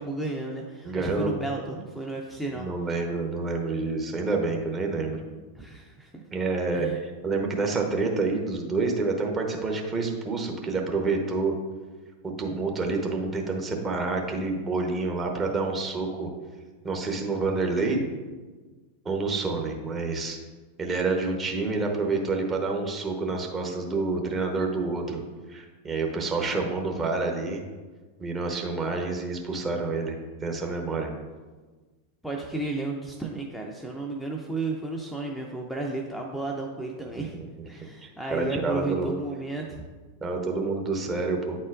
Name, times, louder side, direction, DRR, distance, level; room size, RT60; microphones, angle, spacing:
voice 1, 0.0-2.7 5.5-6.2 6.7-7.0 32.2-37.4 37.6-39.8, right 2 dB, ahead, 0 dB, 0.5 m, -33 dB
voice 2, 0.8-1.3 2.5-5.2 6.3-11.6 12.2-16.3 16.8-18.0 19.0-20.4 20.8-25.2 25.5-27.6 28.2-31.1 37.3-37.5 38.0-39.1 40.2-41.6, right 3 dB, 20° right, 2 dB, 1.0 m, -28 dB
9.1 x 4.2 x 2.5 m, 1.3 s
figure-of-eight pair, 90°, 0 cm